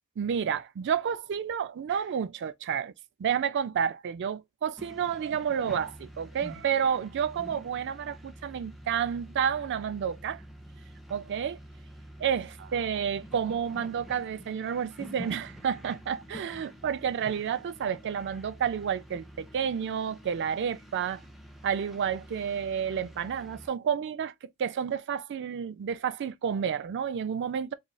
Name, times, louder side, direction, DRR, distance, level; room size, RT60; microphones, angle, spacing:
voice 1, 0.2-2.9 3.2-10.4 11.1-11.6 12.2-21.2 21.6-27.7, right 7 dB, 55° right, 0.4 m, -30 dB
sound 1, 4.8-23.7, equal, ahead, 0.6 m, -48 dB
3.9 x 3.1 x 2.2 m
head